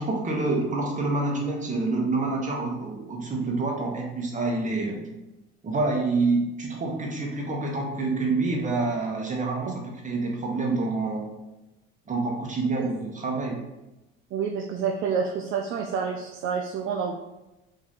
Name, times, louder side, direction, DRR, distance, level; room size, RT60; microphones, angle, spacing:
voice 1, 0.0-5.0 5.6-9.7 10.0-11.2 12.1-13.6, right 3 dB, 20° right, 0 dB, 1.0 m, -27 dB
voice 2, 14.3-17.1, right 6 dB, 40° right, 3 dB, 0.4 m, -28 dB
2.9 x 2.7 x 4.0 m, 0.98 s
hypercardioid pair, 70°, 34 cm